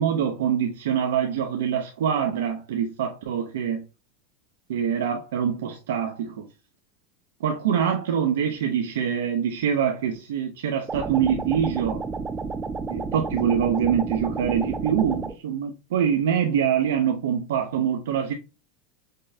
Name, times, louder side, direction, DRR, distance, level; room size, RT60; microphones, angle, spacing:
voice 1, 0.0-3.8 4.7-6.4 7.4-12.0 12.9-18.3, right 8 dB, 85° right, 0.5 m, -24 dB
sound 1, 10.9-15.4, right 4 dB, 15° right, 0.5 m, -31 dB
5.0 x 2.2 x 2.6 m
supercardioid pair, 130°, 0 cm